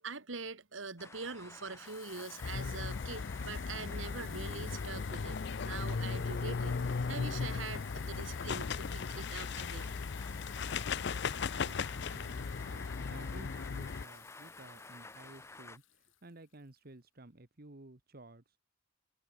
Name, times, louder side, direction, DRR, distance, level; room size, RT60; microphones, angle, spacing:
voice 1, 0.0-9.9, right 4 dB, 75° right, 1.9 m, -44 dB
sound 1, 1.0-15.8, left 3 dB, 15° left, 0.9 m, -53 dB
Water tap faucet / Sink (filling or washing), 1.8-16.6, left 14 dB, 80° left, 3.5 m, -56 dB
sound 2, 2.4-14.0, left 5 dB, 60° left, 0.5 m, -37 dB
voice 2, 11.4-18.6, right 2 dB, 50° right, 1.4 m, -55 dB
head